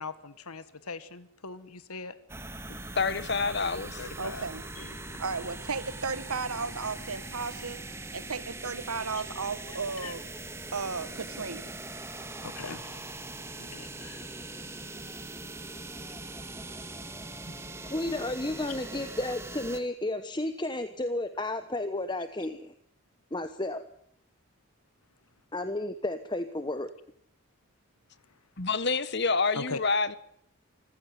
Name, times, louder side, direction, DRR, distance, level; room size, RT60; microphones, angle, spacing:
voice 1, 0.0-2.1 4.0-4.4 4.8-5.2 10.0-10.1 12.4-13.3 13.6-14.3 18.7-18.8 29.5-29.8, left 4 dB, 90° left, 1.5 m, -41 dB
sound 1, 2.3-19.8, right 2 dB, 10° right, 1.9 m, -41 dB
voice 2, 2.9-4.0 28.6-30.2, left 4 dB, 50° left, 1.4 m, -27 dB
voice 3, 4.2-4.6 5.2-7.8 8.1-10.2 10.7-11.7, right 4 dB, 85° right, 1.4 m, -34 dB
voice 4, 17.9-22.7 23.3-23.9 25.5-26.9, left 1 dB, 20° left, 1.0 m, -32 dB
26.0 x 15.5 x 9.8 m
head